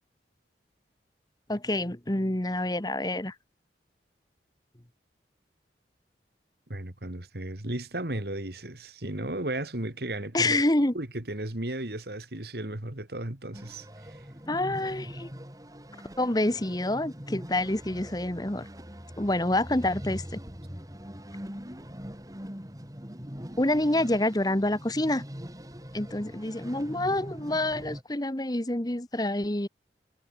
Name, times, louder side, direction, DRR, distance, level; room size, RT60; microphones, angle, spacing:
voice 1, 1.5-3.3 10.3-10.9 14.5-15.3 16.2-18.7 19.2-20.4 23.6-25.2 25.9-29.7, left 1 dB, 20° left, 1.3 m, -27 dB
voice 2, 6.7-10.6 10.9-14.2, right 1 dB, 60° right, 2.5 m, -35 dB
sound 1, 13.5-28.0, equal, 20° right, 4.2 m, -42 dB
head